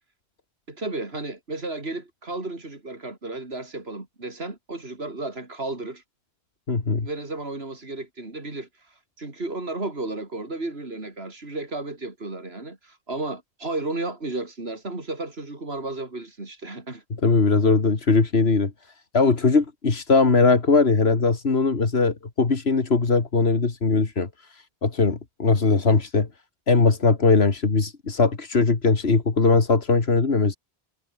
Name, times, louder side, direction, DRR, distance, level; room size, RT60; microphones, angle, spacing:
voice 1, 0.7-6.0 7.0-17.0, right 2 dB, 80° right, 4.2 m, -33 dB
voice 2, 6.7-7.1 17.2-18.7 19.1-26.3 26.7-30.6, left 4 dB, 80° left, 2.4 m, -20 dB
omnidirectional pair, 1.0 m